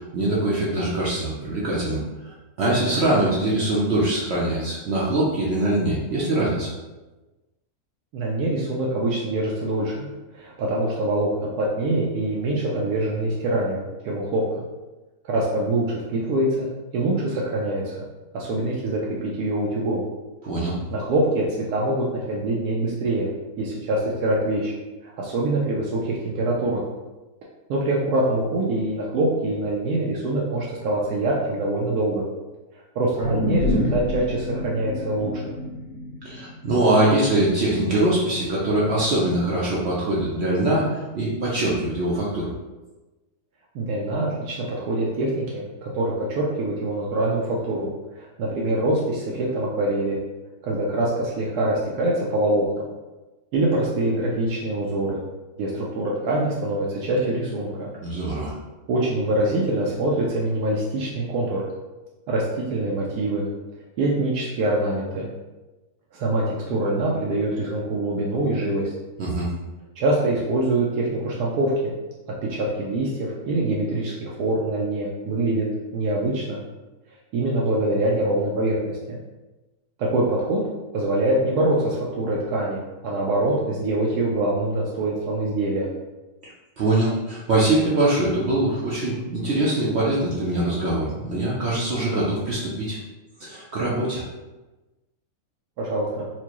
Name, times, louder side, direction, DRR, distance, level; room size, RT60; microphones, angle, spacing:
voice 1, 0.1-2.0 2.6-6.7 20.4-20.8 36.2-42.5 58.0-58.5 69.2-69.5 86.8-93.0 93.4-94.2, right 1 dB, 60° right, -5 dB, 0.7 m, -23 dB
voice 2, 8.1-10.1 10.3-11.3 11.6-14.4 15.3-18.0 18.3-20.0 20.9-23.3 23.6-24.7 25.2-26.8 27.7-32.2 33.0-35.5 43.7-47.9 48.2-50.2 50.6-52.9 53.5-55.2 55.6-57.9 58.9-61.6 62.3-63.5 64.0-65.3 66.1-68.9 70.0-71.9 72.5-75.7 75.9-76.6 77.3-79.2 80.0-80.6 80.9-85.9 95.8-96.3, right 1 dB, 85° right, -4 dB, 1.1 m, -24 dB
sound 1, 33.2-37.7 38.1-38.2, left 1 dB, 70° left, 1.7 m, -28 dB
4.4 x 2.1 x 2.9 m, 1.1 s
omnidirectional pair, 1.6 m